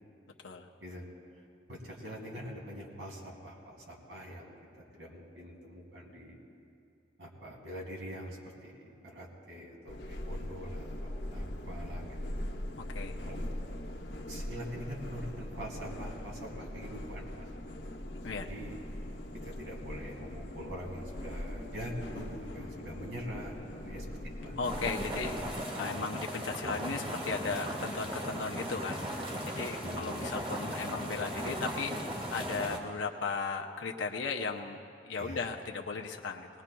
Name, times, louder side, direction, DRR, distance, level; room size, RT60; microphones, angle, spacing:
voice 1, 1.7-4.5 4.9-6.4 7.2-12.5 13.2-13.4 14.3-17.5 18.4-18.8 19.3-24.1 24.4-24.6 25.8-26.2 29.6-30.5 35.2-35.5, equal, 90° right, -2 dB, 2.7 m, -44 dB
sound 1, 9.9-25.5, left 1 dB, 65° left, 1.0 m, -41 dB
voice 2, 12.8-13.1 18.2-18.5 24.6-25.3 25.7-36.5, left 4 dB, 85° left, 2 dB, 0.7 m, -36 dB
sound 2, 24.6-32.8, equal, 30° right, 1.5 m, -37 dB
20.0 x 19.5 x 2.3 m, 2.5 s
head